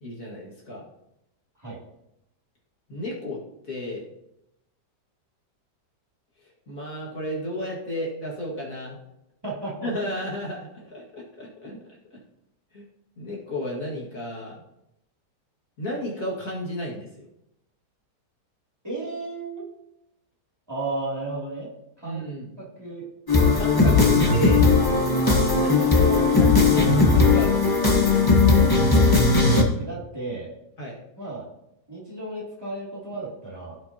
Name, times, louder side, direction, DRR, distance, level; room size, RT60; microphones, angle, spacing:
voice 1, 0.0-0.8 2.9-3.4 3.7-4.1 6.7-9.0 9.8-11.7 12.7-12.8 13.2-14.6 15.8-17.3 22.0-22.5 23.5-24.6 25.6-27.9 30.8-31.0, left 1 dB, 55° left, -5 dB, 2.4 m, -32 dB
voice 2, 9.4-9.9 18.8-19.6 20.7-21.7 22.0-22.2 22.6-23.1 24.7-24.8 25.2-25.4 29.8-30.5 31.2-31.5 31.9-33.8, right 2 dB, 15° right, -6 dB, 2.8 m, -34 dB
sound 1, 23.3-29.6, left 3 dB, 15° left, 1.1 m, -18 dB
16.0 x 6.1 x 2.9 m, 0.85 s
omnidirectional pair, 1.8 m